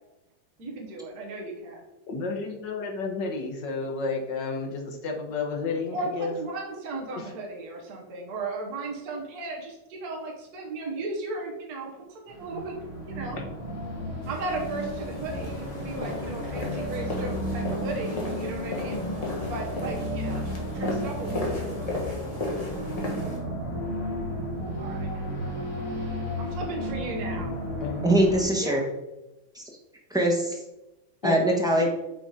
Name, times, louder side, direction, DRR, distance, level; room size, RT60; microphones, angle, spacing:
voice 1, 0.6-1.8 5.9-12.7 13.0-13.4 14.3-19.0 19.5-21.6 24.8-25.2 26.4-27.6 28.6-28.8, right 2 dB, 50° right, -1 dB, 1.6 m, -36 dB
voice 2, 2.1-6.4 7.1-7.3 13.3-13.4 27.8-28.1 31.2-31.4, left 4 dB, 65° left, 2 dB, 1.6 m, -31 dB
sound 1, 12.3-28.4, equal, 40° left, 2.4 m, -33 dB
sound 2, 14.2-23.4, left 2 dB, 20° left, 1.1 m, -35 dB
voice 3, 28.0-28.8 29.5-29.6 30.1-30.6 31.2-31.9, right 1 dB, 5° right, -1 dB, 0.6 m, -22 dB
6.3 x 4.1 x 4.8 m, 0.98 s
omnidirectional pair, 2.2 m